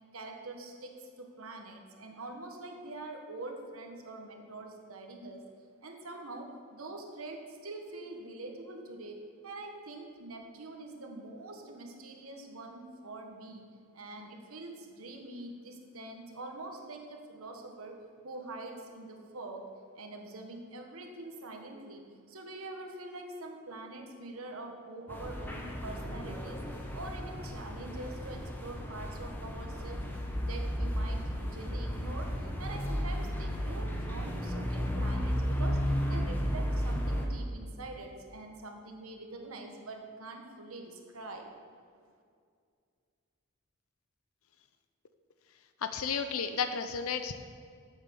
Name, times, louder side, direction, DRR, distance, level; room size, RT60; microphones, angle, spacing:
voice 1, 0.1-5.4 5.8-13.6 13.9-18.0 18.2-19.7 19.9-26.6 26.9-30.0 30.3-35.8 36.1-41.5, right 2 dB, 90° right, 3 dB, 1.4 m, -44 dB
sound 1, 25.1-37.3, equal, 10° left, 1.0 m, -34 dB
voice 2, 45.8-47.3, left 6 dB, 90° left, 9 dB, 0.6 m, -32 dB
9.1 x 7.2 x 6.9 m, 2.2 s
head